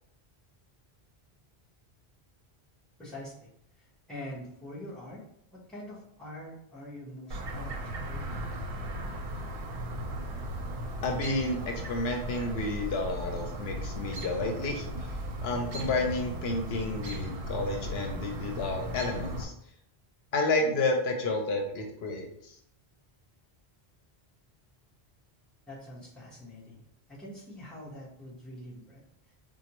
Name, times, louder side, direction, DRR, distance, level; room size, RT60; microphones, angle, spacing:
voice 1, 3.0-3.5 3.7-5.2 5.5-8.5 25.7-26.8 27.1-29.3, left 1 dB, ahead, -8 dB, 0.9 m, -45 dB
Chirp tweet, 7.3-19.4, right 1 dB, 70° right, 0.7 m, -37 dB
voice 2, 11.0-15.1 15.4-19.5 20.3-22.6, left 2 dB, 75° left, 3 dB, 0.8 m, -31 dB
4.2 x 2.1 x 2.9 m, 0.73 s
omnidirectional pair, 1.1 m